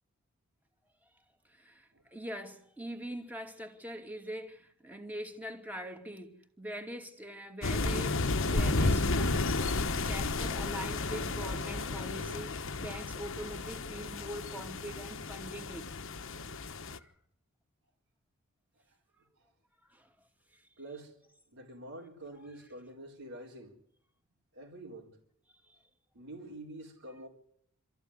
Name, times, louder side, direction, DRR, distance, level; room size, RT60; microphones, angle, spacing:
voice 1, 1.5-15.9 16.9-17.1 19.9-20.1 22.4-22.5, equal, 10° right, 2.7 m, -43 dB
sound 1, 7.6-17.0, left 3 dB, 65° left, 1.3 m, -32 dB
voice 2, 20.8-21.1 21.5-23.8 24.5-25.2 26.1-27.3, right 1 dB, 70° right, 4.1 m, -47 dB
26.5 x 14.0 x 9.9 m
head